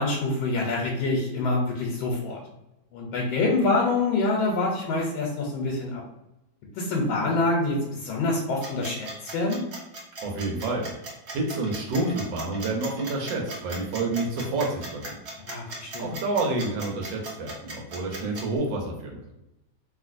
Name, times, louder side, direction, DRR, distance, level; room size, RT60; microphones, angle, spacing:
voice 1, 0.0-2.4 2.9-6.0 6.7-9.6 15.5-16.1, left 2 dB, 85° left, -2 dB, 1.4 m, -26 dB
sound 1, 8.6-18.6, right 2 dB, 60° right, 0.7 m, -38 dB
voice 2, 10.2-10.9 11.3-15.2 16.0-19.1, right 2 dB, 80° right, 0 dB, 1.4 m, -28 dB
3.1 x 2.7 x 2.5 m, 0.89 s
omnidirectional pair, 2.1 m